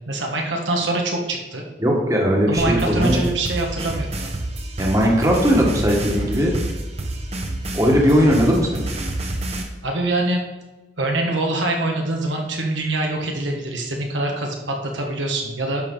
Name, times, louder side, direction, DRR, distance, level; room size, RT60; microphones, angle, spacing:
voice 1, 0.1-1.6 2.5-4.3 9.8-10.4 11.0-15.8, right 2 dB, 90° right, 1 dB, 1.5 m, -24 dB
voice 2, 1.8-3.2 4.8-6.5 7.7-8.8, equal, 20° right, -1 dB, 1.4 m, -18 dB
sound 1, 2.6-9.6, right 1 dB, 35° right, 0.9 m, -28 dB
11.0 x 6.4 x 3.9 m, 1.1 s
head